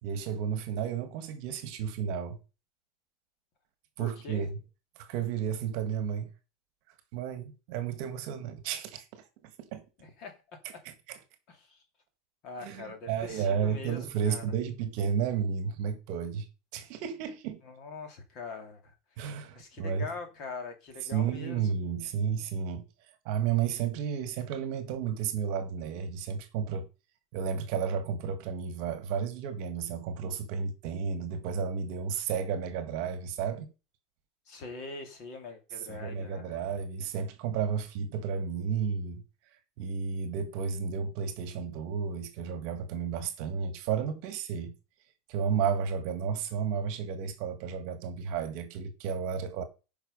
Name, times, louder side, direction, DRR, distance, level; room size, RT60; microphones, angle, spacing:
voice 1, 0.0-2.4 4.0-4.5 5.0-6.3 7.1-9.2 9.7-9.8 10.9-11.2 12.6-16.5 16.7-17.6 19.2-20.1 21.1-22.9 23.3-26.9 27.3-33.7 35.9-39.2 39.8-44.8 45.3-49.6, right 7 dB, 45° right, 1.8 m, -32 dB
voice 2, 4.0-4.5 10.0-10.3 11.5-11.8 12.4-14.4 17.6-18.9 19.5-21.7 34.5-36.6, left 3 dB, 35° left, 2.8 m, -43 dB
10.5 x 5.5 x 5.4 m
supercardioid pair, 180°, 0 cm